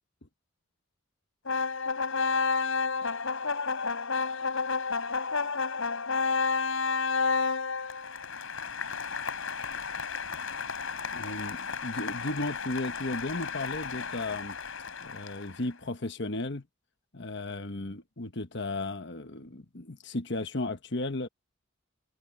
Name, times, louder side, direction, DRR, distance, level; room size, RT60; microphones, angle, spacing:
sound 1, 1.5-15.6, left 4 dB, 75° left, 3.8 m, -31 dB
voice 1, 11.1-14.6 15.0-16.6 17.1-21.3, left 2 dB, 55° left, 1.3 m, -35 dB
head